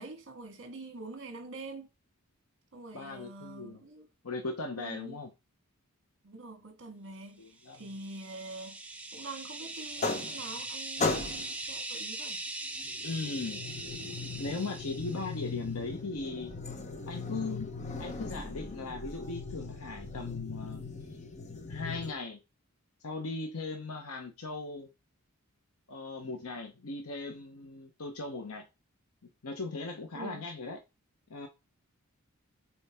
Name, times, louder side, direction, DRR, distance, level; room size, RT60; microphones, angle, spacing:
voice 1, 0.0-1.9 2.7-4.1 4.8-5.2 6.2-7.4 7.7-8.8 9.1-12.4 30.1-30.4, right 2 dB, 60° right, 1.6 m, -45 dB
voice 2, 2.9-3.8 4.2-5.3 7.4-7.9 13.0-13.6 14.2-16.5 17.1-20.8 21.7-22.4 23.0-24.9 25.9-28.7 29.4-30.8 31.3-31.5, left 3 dB, 80° left, 0.9 m, -38 dB
sound 1, 7.7-15.5, right 2 dB, 5° right, 0.6 m, -41 dB
sound 2, 9.8-10.7 11.0-11.6 12.8-22.1, left 3 dB, 30° left, 0.8 m, -38 dB
7.0 x 4.4 x 3.5 m
head